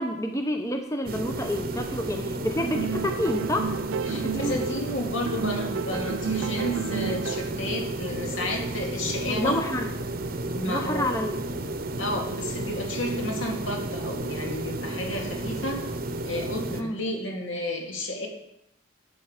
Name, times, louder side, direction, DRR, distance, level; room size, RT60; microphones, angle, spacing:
voice 1, 0.0-3.7 4.1-4.7 9.3-9.9 10.7-11.4 16.8-17.0, left 1 dB, 15° left, 5 dB, 0.7 m, -29 dB
sound 1, 1.1-16.8, right 2 dB, 45° right, 0.8 m, -32 dB
sound 2, 2.6-4.9 5.2-7.7, right 7 dB, 70° right, 0.3 m, -32 dB
voice 2, 4.1-9.6 10.5-11.2 12.0-15.8 16.2-18.3, left 1 dB, 70° left, 1 dB, 2.4 m, -32 dB
12.0 x 8.0 x 5.0 m, 0.80 s
head